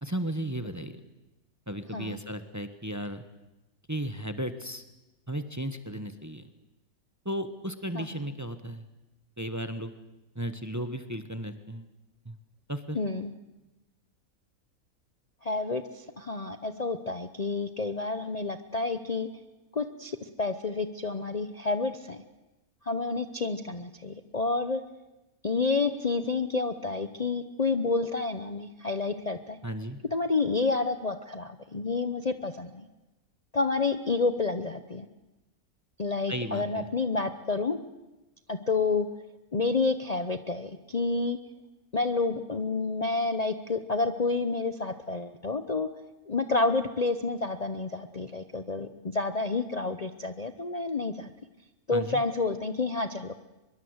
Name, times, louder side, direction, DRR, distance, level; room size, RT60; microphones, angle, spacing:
voice 1, 0.0-1.0 1.7-3.2 3.9-4.8 5.3-6.5 7.2-8.9 9.4-9.9 10.3-11.9 12.2-12.4 12.7-13.0 29.6-30.0 36.3-36.8 51.9-52.2, right 1 dB, 15° right, 10 dB, 1.0 m, -35 dB
voice 2, 12.9-13.3 15.4-19.3 19.7-22.2 22.8-24.8 25.4-29.6 30.1-32.9 33.5-35.1 36.0-37.8 38.5-39.1 39.5-41.4 41.9-45.9 46.3-51.3 51.9-53.4, left 3 dB, 30° left, 9 dB, 0.8 m, -29 dB
24.0 x 22.5 x 8.0 m, 1.0 s
omnidirectional pair, 1.6 m